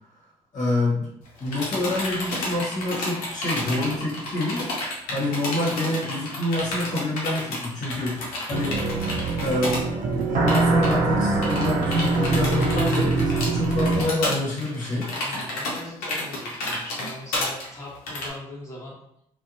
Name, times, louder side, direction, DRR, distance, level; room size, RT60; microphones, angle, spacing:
voice 1, 0.5-1.1 1.4-4.6 5.1-8.8 9.4-9.8 10.2-15.1, left 1 dB, 55° left, -6 dB, 1.0 m, -27 dB
sound 1, 1.3-9.8 10.1-10.2 10.5-10.9 11.4-18.3, left 2 dB, 75° left, 0.7 m, -31 dB
sound 2, 8.5-14.0, right 3 dB, 65° right, 0.5 m, -23 dB
voice 2, 12.7-13.0 13.9-14.4 15.2-19.0, left 1 dB, 20° left, -6 dB, 1.2 m, -40 dB
2.6 x 2.1 x 2.5 m, 0.75 s
hypercardioid pair, 50°, 15 cm